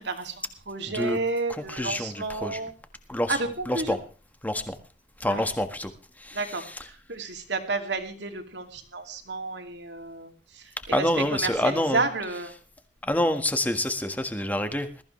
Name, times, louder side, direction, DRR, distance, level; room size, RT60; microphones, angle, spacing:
voice 1, 0.0-2.7 3.3-4.0 5.3-5.4 6.3-12.5, right 3 dB, 75° right, 5 dB, 2.6 m, -31 dB
voice 2, 0.9-1.2 1.5-2.6 3.1-4.0 4.4-4.8 5.2-5.9 6.2-6.9 10.9-12.3 13.0-15.0, left 1 dB, 10° left, 7 dB, 1.6 m, -28 dB
21.0 x 14.5 x 3.3 m, 0.35 s
head